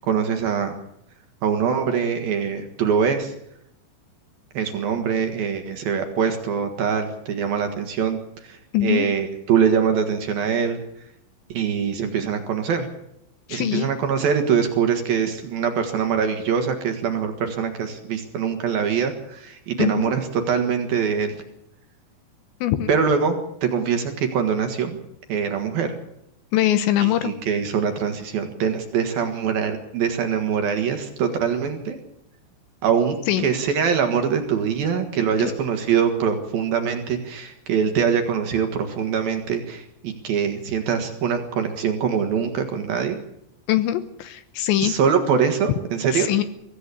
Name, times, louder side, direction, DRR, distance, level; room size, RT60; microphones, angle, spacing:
voice 1, 0.0-0.8 1.4-3.3 4.5-8.2 8.4-10.8 11.5-12.9 13.5-21.4 22.9-25.0 25.3-26.0 27.0-32.0 32.8-43.2 44.8-46.3, right 7 dB, 60° right, 6 dB, 2.8 m, -23 dB
voice 2, 8.7-9.1 13.5-13.9 19.8-20.1 22.6-22.9 26.5-27.3 33.3-33.5 35.4-35.5 43.7-44.9 46.1-46.4, left 13 dB, 75° left, 11 dB, 3.0 m, -22 dB
23.5 x 15.0 x 8.4 m, 0.79 s
omnidirectional pair, 5.7 m